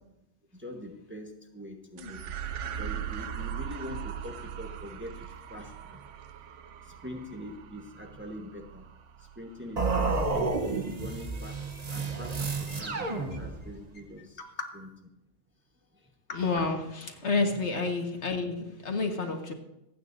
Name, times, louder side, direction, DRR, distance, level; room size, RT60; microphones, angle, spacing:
voice 1, 0.5-8.9 9.2-10.6 10.9-11.6 11.9-14.4 14.7-14.9 15.9-16.1 17.7-17.9, left 1 dB, 10° right, 2 dB, 1.0 m, -44 dB
sound 1, 2.0-10.6, right 9 dB, 85° right, 1.0 m, -40 dB
sound 2, 9.8-13.9, right 3 dB, 35° right, 1.0 m, -30 dB
voice 2, 16.3-19.5, left 3 dB, 70° left, 3 dB, 1.8 m, -30 dB
27.0 x 9.1 x 2.7 m, 0.88 s
omnidirectional pair, 1.2 m